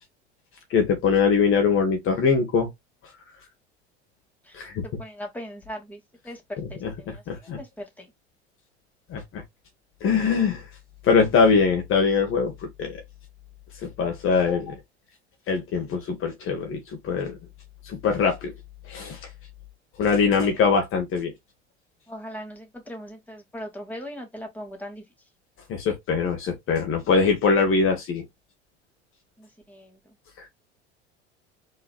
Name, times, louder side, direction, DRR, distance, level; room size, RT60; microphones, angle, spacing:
voice 1, 0.7-2.7 4.5-4.8 6.6-7.6 9.1-9.4 10.0-10.6 11.0-12.5 12.8-13.0 14.0-14.8 15.5-17.4 17.8-18.5 18.9-19.2 20.0-21.3 25.7-28.2, left 5 dB, 40° left, 1.7 m, -22 dB
voice 2, 4.8-6.0 6.2-6.4 7.0-7.2 7.6-7.7 8.0-8.1 20.4-20.5 22.1-25.0 29.4-29.9, equal, 5° left, 2.5 m, -38 dB
4.8 x 3.9 x 2.4 m
figure-of-eight pair, 75°, 34 cm